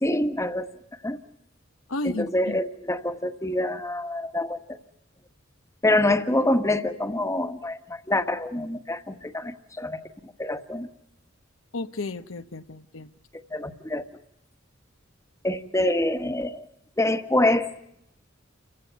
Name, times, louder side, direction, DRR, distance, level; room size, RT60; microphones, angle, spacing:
voice 1, 0.0-0.7 1.0-1.2 2.0-4.6 5.8-10.9 13.5-14.0 15.4-16.7 17.0-17.7, left 1 dB, 15° left, 8 dB, 1.4 m, -26 dB
voice 2, 1.9-2.6 11.7-13.1, left 2 dB, 75° left, 9 dB, 1.0 m, -32 dB
30.0 x 15.5 x 9.1 m, 0.78 s
head